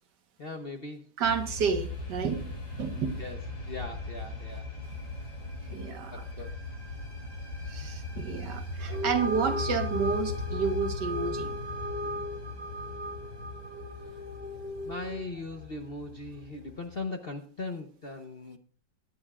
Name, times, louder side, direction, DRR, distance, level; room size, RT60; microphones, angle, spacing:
voice 1, 0.4-1.1 3.2-4.7 6.1-6.6 13.9-14.2 14.8-18.6, left 3 dB, 45° left, 5 dB, 0.8 m, -39 dB
sound 1, 1.2-17.0, left 3 dB, 75° left, 5.6 m, -39 dB
voice 2, 1.2-3.2 5.7-6.2 7.7-11.5, right 6 dB, 65° right, 8 dB, 1.8 m, -31 dB
sound 2, 8.8-15.4, equal, 10° right, 0.6 m, -37 dB
22.5 x 10.5 x 2.4 m, 0.38 s
omnidirectional pair, 2.0 m